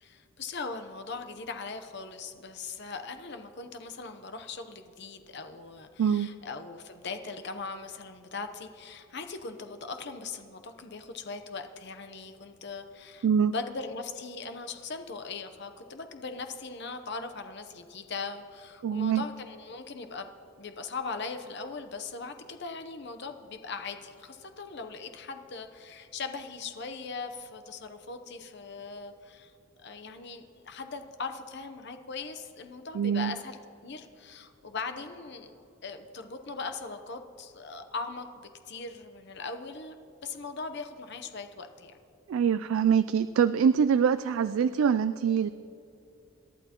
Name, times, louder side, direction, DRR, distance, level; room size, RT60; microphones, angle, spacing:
voice 1, 0.0-20.3 20.6-29.5 29.8-33.6 33.8-40.0 40.2-41.9, left 4 dB, 50° left, 7 dB, 0.8 m, -40 dB
voice 2, 18.8-19.2 32.9-33.3 42.3-45.5, right 7 dB, 70° right, 13 dB, 0.3 m, -24 dB
27.5 x 11.5 x 3.0 m, 2.7 s
head